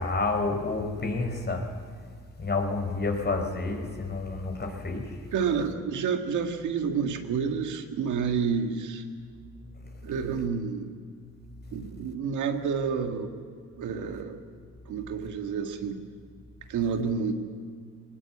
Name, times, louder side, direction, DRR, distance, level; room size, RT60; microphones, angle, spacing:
voice 1, 0.0-1.6 2.4-5.0, left 3 dB, 35° left, 4 dB, 4.4 m, -29 dB
voice 2, 5.3-9.0 10.0-10.9 11.7-13.3 13.8-14.4 14.9-16.0 16.7-17.3, right 6 dB, 75° right, 5 dB, 1.9 m, -29 dB
20.5 x 19.5 x 8.6 m, 2.1 s
cardioid pair, 90°, 30 cm